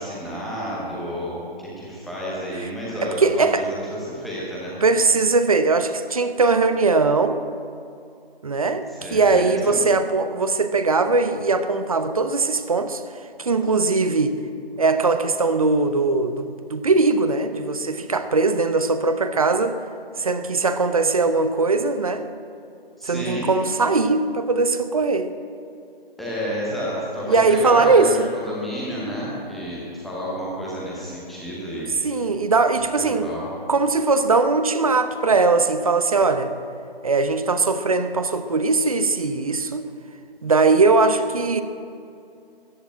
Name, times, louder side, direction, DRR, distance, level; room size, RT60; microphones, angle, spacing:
voice 1, 0.0-4.8 8.9-9.8 23.0-23.5 26.2-31.9 33.0-33.5, equal, ahead, -7 dB, 0.8 m, -31 dB
voice 2, 3.0-3.7 4.8-7.4 8.4-13.0 13.4-14.4 14.8-19.8 20.2-22.3 23.0-25.3 27.3-28.3 32.0-33.3 33.7-36.5 37.0-39.9 40.4-41.6, right 3 dB, 35° right, 10 dB, 0.9 m, -20 dB
14.5 x 10.5 x 8.8 m, 2.5 s
figure-of-eight pair, 155°, 30 cm